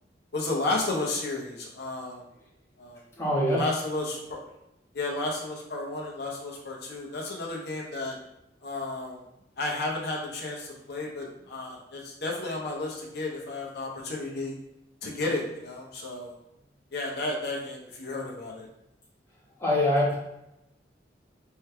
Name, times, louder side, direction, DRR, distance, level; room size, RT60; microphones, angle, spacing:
voice 1, 0.3-2.2 2.8-3.0 3.5-4.2 4.9-8.2 8.6-9.2 9.6-14.5 15.0-16.3 16.9-18.7, left 2 dB, 60° left, -2 dB, 0.9 m, -32 dB
voice 2, 3.2-3.6 19.6-20.2, left 1 dB, 15° left, -8 dB, 1.6 m, -23 dB
4.5 x 3.2 x 3.3 m, 0.86 s
head